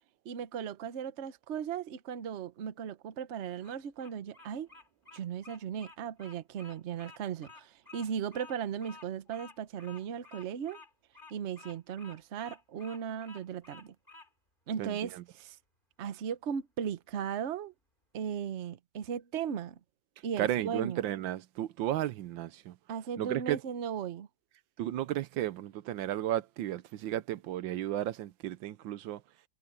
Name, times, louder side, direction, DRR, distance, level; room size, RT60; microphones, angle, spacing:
voice 1, 0.2-4.7 5.1-10.8 11.3-13.9 14.7-15.6 16.0-17.7 18.1-19.8 20.2-21.0 22.9-24.3, right 8 dB, 50° right, 0.9 m, -37 dB
Bird vocalization bird call bird song, 3.4-14.3, left 3 dB, 25° left, 3.4 m, -53 dB
voice 2, 14.8-15.2 20.4-22.8 23.2-23.6 24.8-29.2, right 12 dB, 85° right, 1.4 m, -34 dB
omnidirectional pair, 2.1 m